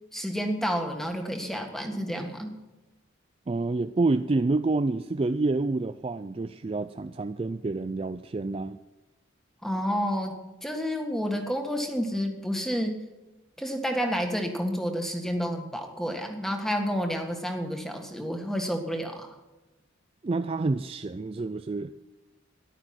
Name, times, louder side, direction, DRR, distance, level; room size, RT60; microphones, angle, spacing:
voice 1, 0.1-2.6 9.6-10.4 10.6-13.0 13.6-19.4, equal, ahead, 4 dB, 1.7 m, -30 dB
voice 2, 3.5-8.8 20.2-21.9, right 3 dB, 30° right, 10 dB, 0.4 m, -28 dB
14.5 x 11.5 x 6.0 m, 1.1 s
head